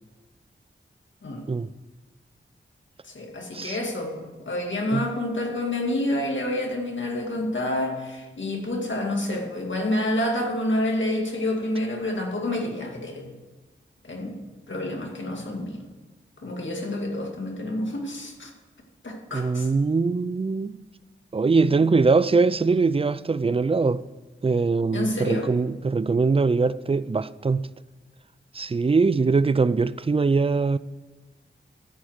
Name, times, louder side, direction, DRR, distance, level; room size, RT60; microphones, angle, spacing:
voice 1, 3.0-13.3 14.0-14.4 14.7-15.8 16.4-18.5 19.0-19.7 24.9-25.5, left 1 dB, 65° left, 2.2 m, -28 dB
voice 2, 19.3-20.8 21.3-24.0 24.4-27.7 28.5-30.8, right 4 dB, 30° right, 0.4 m, -22 dB
14.0 x 4.8 x 7.9 m
wide cardioid pair, 75°, 21 cm